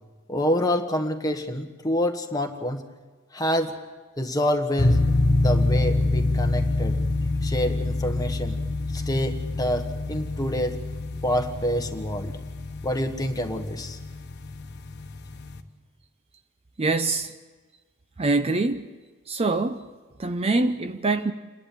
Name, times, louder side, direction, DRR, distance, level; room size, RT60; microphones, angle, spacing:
voice 1, 0.3-2.8 3.3-3.7 4.2-5.0 5.3-7.0 7.4-8.6 8.9-10.8 11.2-12.4 12.8-14.0, equal, 20° left, 1.4 m, -27 dB
sound 1, 4.8-15.6, left 2 dB, 55° left, 1.2 m, -26 dB
voice 2, 16.8-17.3 18.2-18.9 19.3-19.9 20.2-21.3, right 3 dB, 30° right, 0.6 m, -24 dB
28.0 x 11.0 x 8.6 m
head